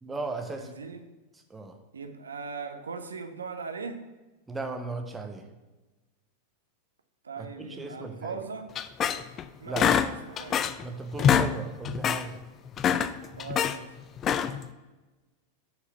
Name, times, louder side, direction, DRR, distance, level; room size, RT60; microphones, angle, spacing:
voice 1, 0.0-0.7 1.5-1.8 4.5-5.5 7.4-8.4 9.6-10.0 10.8-12.4 12.8-12.9 13.2-13.4, right 3 dB, 10° right, 5 dB, 1.0 m, -36 dB
voice 2, 0.5-1.0 1.9-4.1 7.2-8.7 9.6-10.6 11.2-11.4 13.4-14.0, right 5 dB, 70° right, 7 dB, 0.8 m, -39 dB
sound 1, 8.7-9.4 9.8-10.9 11.1-11.5 11.8-12.2 12.7-13.8 14.2-14.7, left 8 dB, 30° left, 0.4 m, -25 dB
6.8 x 4.8 x 6.7 m, 1.1 s
figure-of-eight pair, 90°, 0 cm